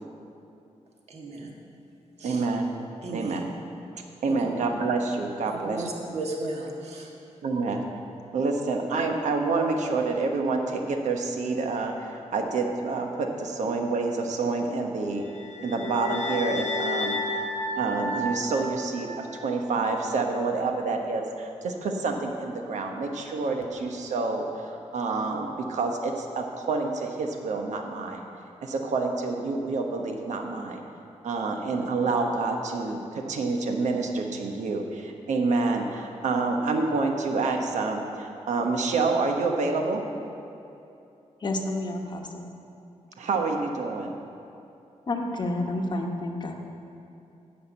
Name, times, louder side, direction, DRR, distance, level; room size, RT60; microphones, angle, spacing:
voice 1, 1.1-1.5 2.2-2.4 3.0-3.4 4.3-4.5 5.5-7.1, right 2 dB, 60° right, -1 dB, 1.7 m, -35 dB
voice 2, 2.2-2.7 3.1-3.5 4.2-5.9 7.4-7.8 8.3-15.2 15.6-17.5 17.8-28.2 28.6-30.8 31.2-40.0 43.2-44.1, right 3 dB, 85° right, 3 dB, 1.1 m, -28 dB
sound 1, 15.3-19.5, left 1 dB, 80° left, 1.1 m, -32 dB
voice 3, 41.4-42.5 45.1-46.5, left 2 dB, 40° left, 3 dB, 1.0 m, -30 dB
10.0 x 5.8 x 8.1 m, 2.7 s
wide cardioid pair, 135°, 12 cm